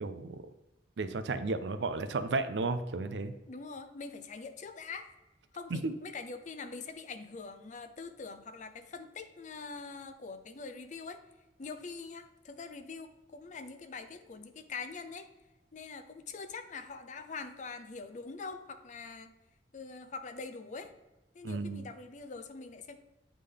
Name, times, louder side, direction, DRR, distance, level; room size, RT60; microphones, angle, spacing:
voice 1, 0.0-0.4 1.0-3.3 5.7-5.9 21.4-21.8, right 3 dB, 75° right, 10 dB, 0.5 m, -33 dB
voice 2, 3.5-5.1 5.5-11.2 11.6-15.3 15.7-19.3 19.7-20.9 21.3-23.0, left 4 dB, 45° left, 8 dB, 0.5 m, -44 dB
8.1 x 3.7 x 3.4 m, 1.1 s
head